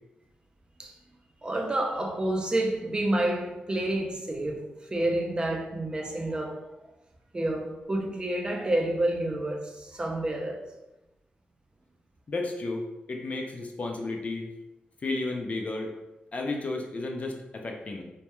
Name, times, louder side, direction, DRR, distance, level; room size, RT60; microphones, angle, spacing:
voice 1, 1.4-4.6 4.9-6.6 7.3-10.6, right 1 dB, 25° right, 0.4 m, -29 dB
voice 2, 12.3-14.5 15.0-15.9 16.3-18.0, left 2 dB, 45° left, 0.4 m, -33 dB
2.2 x 2.2 x 2.9 m
cardioid pair, 70°, 3 cm